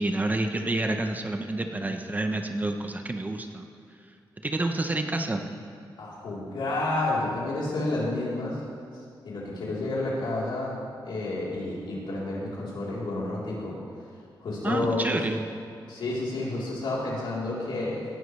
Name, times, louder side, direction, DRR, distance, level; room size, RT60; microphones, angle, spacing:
voice 1, 0.0-3.7 4.4-5.4 14.6-15.4, right 2 dB, 20° right, 5 dB, 0.8 m, -28 dB
voice 2, 6.0-8.6 9.2-13.8 14.4-15.2 15.9-18.1, left 2 dB, 80° left, -6 dB, 3.7 m, -30 dB
17.5 x 12.0 x 3.3 m, 2.5 s
wide cardioid pair, 120°, 8 cm